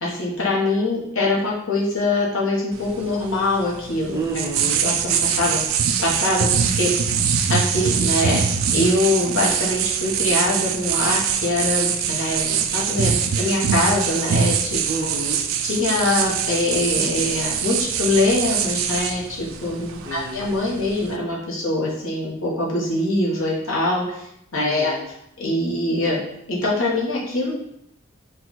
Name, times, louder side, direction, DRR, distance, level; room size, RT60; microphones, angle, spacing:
voice 1, 0.0-4.2 4.8-5.6 6.0-6.5 6.8-7.2 7.5-8.4 8.7-14.8 15.6-24.2 24.5-24.9 25.4-26.2 26.5-27.5, left 2 dB, 70° left, -5 dB, 1.3 m, -23 dB
sound 1, 2.7-21.2, right 7 dB, 70° right, 0.4 m, -23 dB
voice 2, 4.1-4.9 14.9-15.4 20.0-20.4 24.5-25.1, right 3 dB, 15° right, -1 dB, 0.5 m, -29 dB
4.0 x 2.4 x 4.1 m, 0.78 s
head